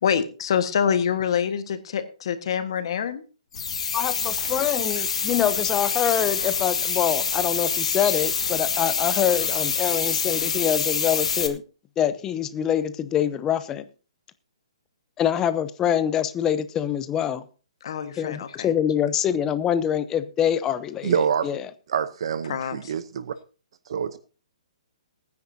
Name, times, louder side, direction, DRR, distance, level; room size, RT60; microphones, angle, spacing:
voice 1, 0.0-3.2 17.8-18.7 22.5-22.8, left 8 dB, 55° left, 10 dB, 1.5 m, -25 dB
sound 1, 3.5-11.5, left 6 dB, 80° left, 1.7 m, -26 dB
voice 2, 3.9-11.6 12.0-13.8 15.2-17.4 18.2-21.1 21.4-21.6, left 9 dB, 15° left, 13 dB, 0.7 m, -25 dB
voice 3, 21.0-21.5 21.9-23.3 23.9-24.2, right 7 dB, 55° right, 13 dB, 0.8 m, -26 dB
21.0 x 9.5 x 2.7 m, 0.36 s
hypercardioid pair, 160°, 3 cm